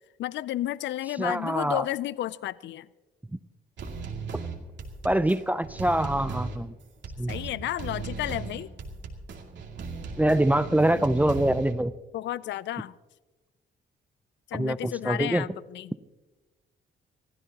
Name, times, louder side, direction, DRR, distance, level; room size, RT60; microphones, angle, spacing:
voice 1, 0.2-2.9 7.3-8.7 12.1-13.0 14.5-15.9, left 14 dB, 65° left, 19 dB, 0.4 m, -32 dB
voice 2, 1.2-1.8 5.0-6.7 7.2-7.3 10.2-11.9 14.6-15.4, right 1 dB, 10° right, 14 dB, 0.5 m, -24 dB
sound 1, 3.8-11.7, right 4 dB, 65° right, 2.4 m, -37 dB
25.0 x 15.5 x 2.9 m, 1.2 s
cardioid pair, 90°, 20 cm